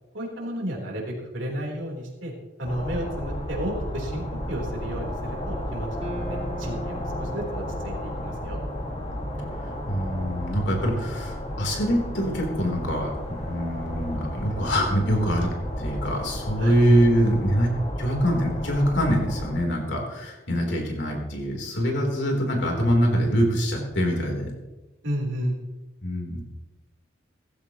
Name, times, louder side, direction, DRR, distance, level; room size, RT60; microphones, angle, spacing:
voice 1, 0.1-2.3 2.6-5.9 6.2-8.6 16.6-16.8 25.0-25.6, equal, 85° right, -1 dB, 3.9 m, -32 dB
sound 1, 2.6-19.5, equal, 35° left, 2.1 m, -33 dB
sound 2, 6.0-10.3, right 1 dB, 30° right, 1.4 m, -41 dB
voice 2, 9.6-15.5 15.8-17.7 18.0-24.5 26.0-26.4, equal, 70° left, 0 dB, 3.7 m, -24 dB
17.0 x 14.5 x 3.1 m, 1.1 s
head